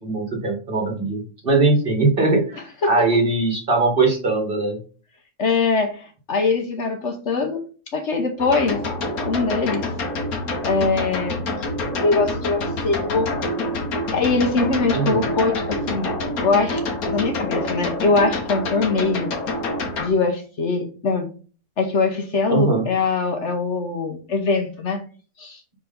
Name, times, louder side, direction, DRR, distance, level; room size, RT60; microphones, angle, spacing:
voice 1, 0.0-4.8 14.9-15.2 22.5-22.8, right 3 dB, 40° right, 1 dB, 1.7 m, -20 dB
voice 2, 5.4-7.6 7.9-8.8 9.3-9.8 10.6-11.4 12.0-13.5 14.1-16.1 16.4-16.8 17.1-19.3 20.0-21.3 21.8-25.0 25.4-25.6, left 4 dB, 55° left, 4 dB, 1.2 m, -22 dB
sound 1, 8.4-20.1, left 1 dB, 85° left, 1.7 m, -27 dB
4.8 x 3.8 x 5.1 m, 0.38 s
omnidirectional pair, 1.5 m